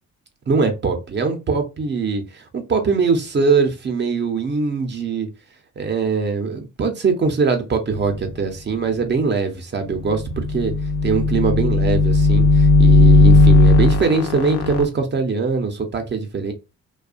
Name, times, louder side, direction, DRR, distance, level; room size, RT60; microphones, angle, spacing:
voice 1, 0.5-5.3 5.8-10.7 11.0-16.5, right 4 dB, 35° right, 0.7 m, -22 dB
sound 1, 10.1-14.8, left 3 dB, 50° left, 0.6 m, -15 dB
2.6 x 2.3 x 2.4 m
cardioid pair, 90°, 30 cm